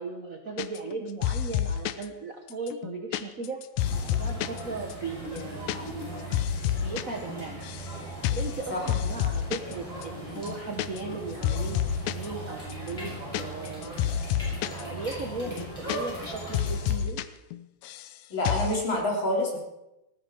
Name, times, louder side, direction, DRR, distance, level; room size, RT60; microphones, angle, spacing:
voice 1, 0.0-3.6 4.1-6.0 6.8-7.6 8.2-11.8 12.1-14.0 14.6-17.2, right 3 dB, 70° right, 3 dB, 0.8 m, -37 dB
sound 1, 0.6-1.0 1.2-2.1 2.5-4.6 4.9-5.0 5.3-5.8 6.0-7.0 7.3-7.9 8.2-8.6 8.9-9.7 10.0-10.1 10.4-11.2 11.4-12.3 12.7-14.8 15.1-15.2 15.5-16.3 16.5-17.2 17.5-18.1 18.4-18.8, left 10 dB, 80° left, 2.0 m, -29 dB
sound 2, 3.8-17.0, right 1 dB, 10° left, 7.0 m, -39 dB
voice 2, 18.3-19.6, left 1 dB, 40° left, -2 dB, 4.2 m, -27 dB
19.0 x 15.0 x 4.6 m, 0.93 s
omnidirectional pair, 3.4 m